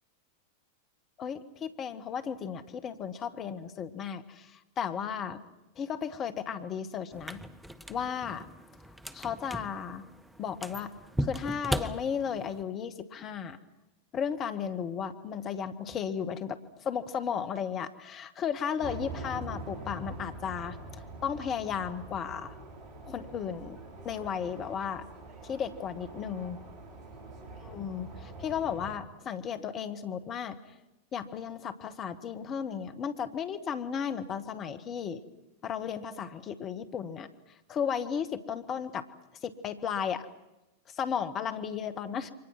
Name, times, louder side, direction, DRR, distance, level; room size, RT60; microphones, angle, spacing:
voice 1, 1.2-5.4 5.8-7.4 7.9-8.4 9.1-10.0 10.4-10.9 11.2-13.6 14.1-20.8 21.2-22.5 23.1-23.8 24.0-25.0 25.4-26.6 27.6-28.1 28.4-30.6 31.1-35.2 35.6-37.3 37.7-39.0 39.4-40.2 41.0-42.3, left 7 dB, 30° left, 9 dB, 1.8 m, -34 dB
sound 1, 7.1-12.6, equal, 5° right, 1.4 m, -38 dB
sound 2, 18.8-29.0, right 2 dB, 35° right, 5.0 m, -44 dB
29.0 x 24.5 x 6.1 m, 0.97 s
figure-of-eight pair, 90°, 0 cm